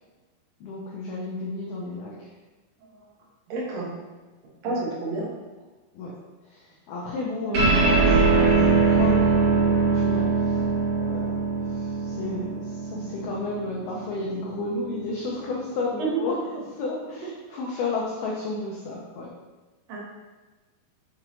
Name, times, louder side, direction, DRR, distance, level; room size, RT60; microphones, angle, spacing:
voice 1, 0.6-2.3 4.7-4.8 5.9-6.1 6.5-10.6 10.9-16.4 16.7-19.3, left 2 dB, 85° left, -3 dB, 2.1 m, -32 dB
voice 2, 3.5-3.9 4.6-5.3 7.5-7.7 16.0-16.2 19.9-20.0, right 3 dB, 80° right, -5 dB, 1.4 m, -28 dB
sound 1, 7.5-14.3, right 4 dB, 50° right, 2.5 m, -22 dB
6.4 x 5.8 x 3.0 m, 1.2 s
omnidirectional pair, 5.4 m